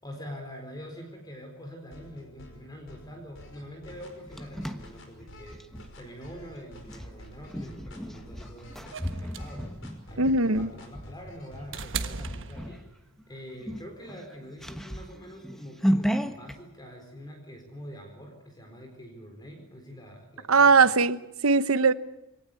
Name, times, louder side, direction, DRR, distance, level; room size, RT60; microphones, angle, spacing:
voice 1, 0.0-5.6 6.0-9.8 10.1-12.9 13.3-20.8, equal, 20° left, 4.2 m, -45 dB
sound 1, 1.9-11.9, left 1 dB, 60° left, 5.3 m, -48 dB
sound 2, 3.9-5.9 6.9-11.1 11.6-11.8 12.2-12.9 13.2-13.3 13.6-16.6, equal, ahead, 1.2 m, -33 dB
sound 3, 8.9-13.2 14.4-14.5, right 5 dB, 60° right, 1.4 m, -38 dB
voice 2, 10.2-10.7 20.5-21.2 21.4-21.9, right 4 dB, 75° right, 1.1 m, -20 dB
24.5 x 18.0 x 8.4 m
head